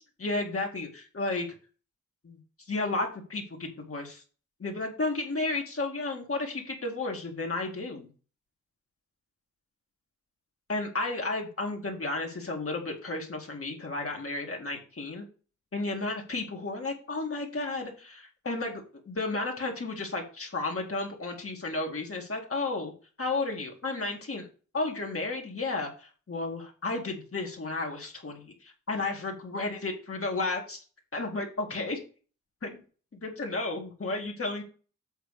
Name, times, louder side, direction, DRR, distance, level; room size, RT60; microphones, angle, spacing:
voice 1, 0.2-1.5 2.2-2.4 2.7-4.2 4.6-8.1 10.7-15.2 15.7-22.9 23.2-24.5 24.7-30.8 31.1-32.0 32.6-32.8 33.1-34.6, left 2 dB, 45° left, 1 dB, 2.2 m, -33 dB
8.0 x 3.4 x 6.5 m, 0.37 s
cardioid pair, 70°, 31 cm